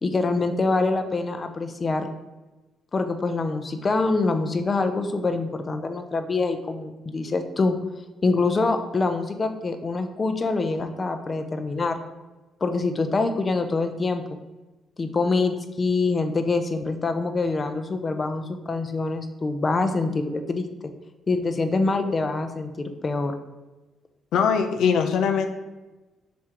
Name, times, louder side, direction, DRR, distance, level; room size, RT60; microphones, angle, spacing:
voice 1, 0.0-2.1 2.9-7.8 8.2-12.0 12.6-14.4 15.0-20.7 21.3-23.3, left 3 dB, 35° left, 7 dB, 0.6 m, -25 dB
voice 2, 24.3-25.5, left 6 dB, 80° left, 6 dB, 0.5 m, -21 dB
6.1 x 3.7 x 4.6 m, 1.1 s
cardioid pair, 90°, 0 cm